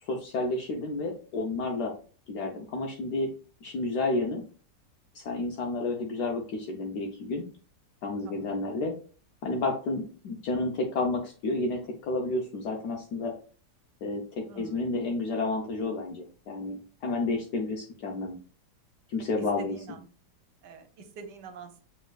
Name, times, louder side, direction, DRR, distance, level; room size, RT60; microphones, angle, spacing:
voice 1, 0.0-1.9 2.3-3.3 3.6-4.4 5.1-7.4 8.0-8.9 9.4-13.3 14.0-18.4 19.1-19.7, left 2 dB, 75° left, 1 dB, 1.3 m, -31 dB
voice 2, 8.2-8.6 14.5-14.8 17.2-17.3 19.6-20.1 20.6-21.8, right 5 dB, 80° right, 8 dB, 1.4 m, -45 dB
6.2 x 3.6 x 2.3 m, 0.39 s
omnidirectional pair, 1.8 m